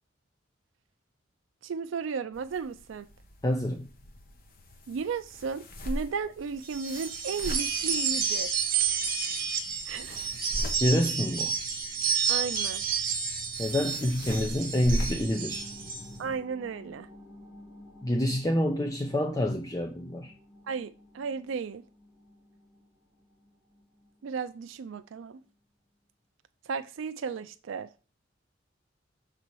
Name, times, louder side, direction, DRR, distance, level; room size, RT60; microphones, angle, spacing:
voice 1, 1.6-3.1 4.9-8.5 8.8-9.0 9.9-10.3 12.3-12.8 16.2-17.1 20.7-21.8 24.2-25.4 26.7-27.9, right 5 dB, 75° right, 0.4 m, -34 dB
sound 1, 2.3-16.4, equal, 50° left, 1.0 m, -40 dB
voice 2, 3.4-3.9 10.8-11.5 13.6-15.7 18.0-20.3, left 1 dB, 20° left, 0.6 m, -27 dB
sound 2, 6.6-16.1, right 6 dB, 50° right, 1.1 m, -30 dB
sound 3, 13.9-25.0 25.5-25.6, left 1 dB, ahead, 1.9 m, -53 dB
6.8 x 4.2 x 4.6 m
head